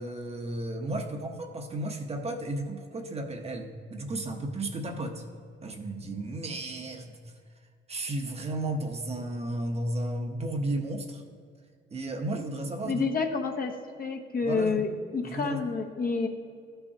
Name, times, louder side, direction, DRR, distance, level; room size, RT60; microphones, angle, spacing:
voice 1, 0.0-5.2 5.6-7.2 7.9-11.2 11.9-13.0 14.4-14.8 15.2-15.6, right 1 dB, 30° right, 4 dB, 0.9 m, -33 dB
voice 2, 12.8-13.7 14.0-16.3, left 4 dB, 45° left, 3 dB, 0.9 m, -29 dB
13.0 x 5.5 x 2.8 m, 2.2 s
cardioid pair, 90°, 20 cm